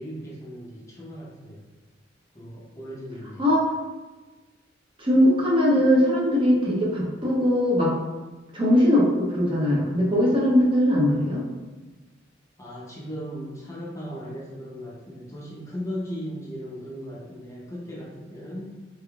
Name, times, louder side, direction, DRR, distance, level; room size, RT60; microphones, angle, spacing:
voice 1, 0.0-1.6 2.3-3.4 5.8-5.9 12.6-18.6, equal, 15° left, -5 dB, 0.6 m, -37 dB
voice 2, 3.4-3.7 5.0-7.9 8.5-11.4, equal, 25° right, -4 dB, 0.6 m, -20 dB
3.4 x 3.3 x 2.3 m, 1.2 s
head